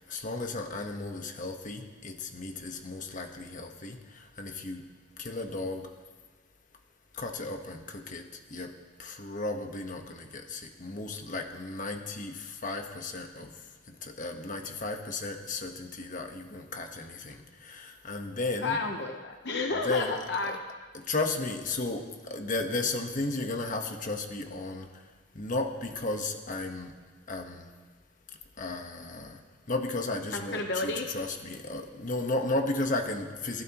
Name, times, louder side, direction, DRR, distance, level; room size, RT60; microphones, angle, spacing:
voice 1, 0.1-4.9 5.2-5.9 7.1-8.7 9.0-18.8 19.8-20.6 20.9-25.1 25.3-26.9 27.3-27.7 28.6-29.4 29.7-33.6, left 2 dB, 45° left, 4 dB, 1.3 m, -34 dB
voice 2, 18.6-20.6 30.3-31.1, left 3 dB, 65° left, 3 dB, 1.0 m, -31 dB
29.5 x 12.0 x 3.1 m, 1.4 s
head